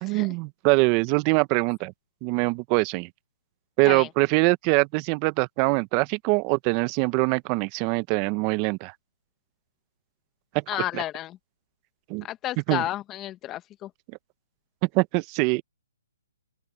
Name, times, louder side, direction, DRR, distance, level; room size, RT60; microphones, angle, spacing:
voice 1, 0.0-1.9 2.2-3.1 3.8-8.9 10.5-10.6 10.9-11.0 12.1-12.2 12.7-12.8 14.9-15.6, right 27 dB, 30° right, 0.9 m, -23 dB
voice 2, 10.7-11.4 12.2-13.9, left 14 dB, 20° left, 1.6 m, -32 dB
open air
hypercardioid pair, 150°, 0 cm